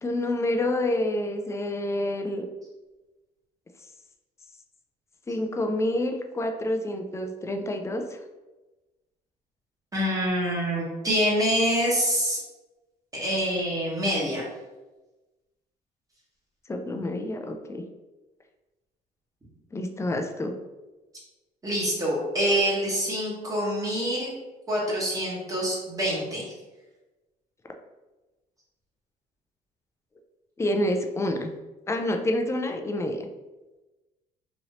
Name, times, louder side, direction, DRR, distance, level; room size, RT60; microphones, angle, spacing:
voice 1, 0.0-2.5 5.3-8.2 16.7-17.8 19.7-20.5 30.6-31.5 31.9-33.3, left 1 dB, 15° left, 4 dB, 0.3 m, -28 dB
voice 2, 9.9-12.4 13.1-14.4 21.6-24.3 24.7-26.4, equal, 20° right, -4 dB, 1.1 m, -26 dB
3.0 x 2.7 x 2.8 m, 1.1 s
cardioid pair, 110°, 17 cm